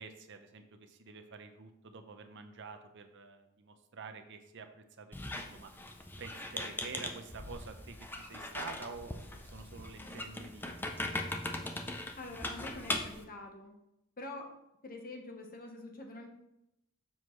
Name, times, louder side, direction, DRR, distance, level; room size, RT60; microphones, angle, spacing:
voice 1, 0.0-5.7 6.2-11.8, right 4 dB, 55° right, 7 dB, 0.7 m, -49 dB
Squeak, 5.1-13.2, left 1 dB, 10° left, 0.5 m, -40 dB
voice 2, 12.2-13.7 14.2-14.5 14.8-16.3, left 2 dB, 40° left, 2 dB, 1.0 m, -45 dB
7.1 x 6.1 x 3.1 m, 0.84 s
head